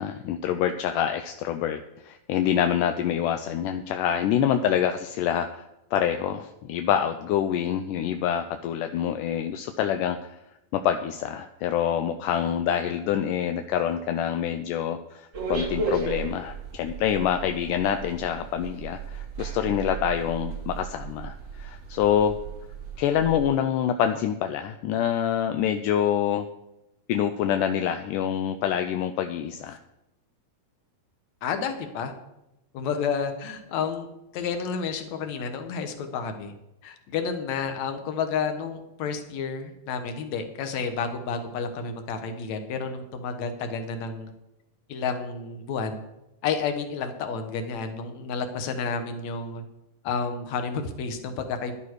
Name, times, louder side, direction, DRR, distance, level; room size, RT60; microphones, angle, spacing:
voice 1, 0.0-10.4 10.7-22.4 23.0-26.5 27.1-29.8, left 9 dB, 80° left, 7 dB, 2.0 m, -26 dB
sound 1, 15.3-23.5, right 4 dB, 90° right, 0.6 m, -35 dB
voice 2, 31.4-32.1 32.7-34.1 34.3-36.5 36.8-44.3 44.9-46.0 46.4-49.6 50.0-51.7, left 5 dB, 60° left, 6 dB, 2.3 m, -30 dB
11.5 x 11.0 x 4.7 m, 0.88 s
omnidirectional pair, 4.0 m